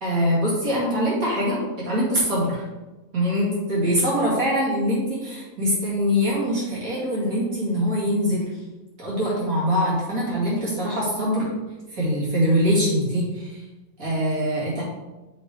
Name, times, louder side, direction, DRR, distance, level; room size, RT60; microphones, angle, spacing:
voice 1, 0.0-2.6 3.1-8.5 9.0-11.5 11.9-13.6 14.0-14.8, equal, 85° right, -7 dB, 2.8 m, -23 dB
6.9 x 3.4 x 4.6 m, 1.1 s
omnidirectional pair, 1.4 m